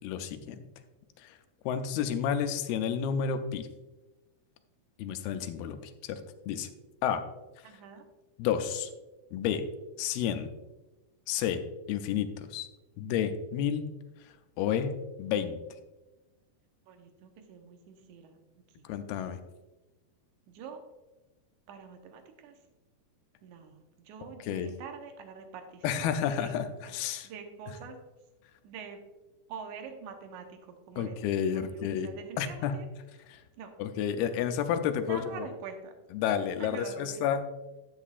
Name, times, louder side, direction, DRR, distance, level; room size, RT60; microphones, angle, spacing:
voice 1, 0.0-0.7 1.2-1.4 1.7-3.7 5.0-6.2 6.5-6.7 7.0-7.2 8.4-8.9 9.3-9.7 10.0-10.5 11.3-11.6 11.9-12.7 13.0-13.9 14.6-15.6 18.8-19.4 24.4-24.7 25.8-27.3 31.0-32.1 32.4-32.8 33.3-33.4 33.8-35.5 36.1-37.5, left 8 dB, 80° left, 8 dB, 2.5 m, -31 dB
voice 2, 7.6-8.0 16.9-18.4 18.8-18.9 20.5-20.8 21.7-22.6 23.4-26.6 27.2-28.0 28.6-29.0 29.5-32.9 33.6-33.7 35.1-35.9 36.6-37.2, right 6 dB, 70° right, 5 dB, 2.0 m, -45 dB
12.0 x 8.3 x 2.4 m, 1.1 s
omnidirectional pair, 4.5 m